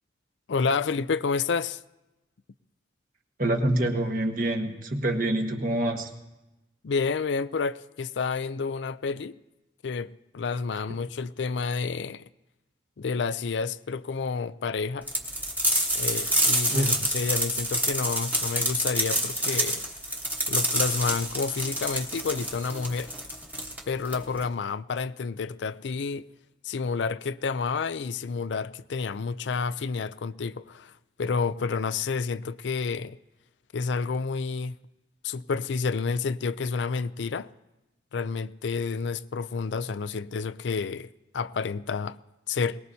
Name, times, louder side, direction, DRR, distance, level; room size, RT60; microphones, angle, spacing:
voice 1, 0.5-1.8 6.8-9.4 9.8-12.2 13.0-15.1 15.9-19.9 20.5-23.1 23.9-26.3 26.6-30.9 31.2-33.2 33.7-34.8 35.2-37.5 38.1-41.1 41.3-42.2 42.5-42.8, left 5 dB, 80° left, 0.5 m, -29 dB
voice 2, 3.4-6.1 10.9-11.0 16.7-17.0, right 1 dB, 50° right, 1.5 m, -26 dB
sound 1, 15.1-24.5, right 1 dB, 10° right, 1.2 m, -27 dB
22.5 x 19.5 x 2.8 m
head